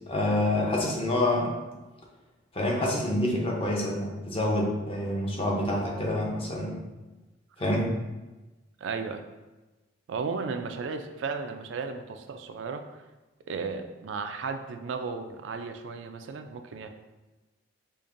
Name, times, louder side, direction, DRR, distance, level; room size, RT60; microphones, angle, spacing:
voice 1, 0.1-1.5 2.5-6.8 7.6-7.9, left 1 dB, 30° left, -2 dB, 0.7 m, -27 dB
voice 2, 8.8-9.2 10.1-13.0 13.5-16.9, right 4 dB, 65° right, 7 dB, 0.3 m, -34 dB
5.1 x 2.5 x 2.5 m, 1.1 s
head